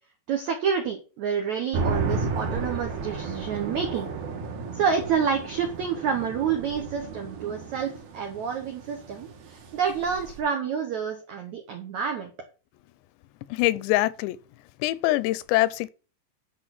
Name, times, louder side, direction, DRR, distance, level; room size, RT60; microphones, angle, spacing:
voice 1, 0.3-4.1 4.7-12.3, right 6 dB, 80° right, 1.6 m, -28 dB
sound 1, 1.7-10.4, right 4 dB, 65° right, 3.2 m, -33 dB
voice 2, 13.5-14.4 14.8-15.9, left 17 dB, 85° left, 2.7 m, -24 dB
10.0 x 4.8 x 5.9 m
omnidirectional pair, 5.0 m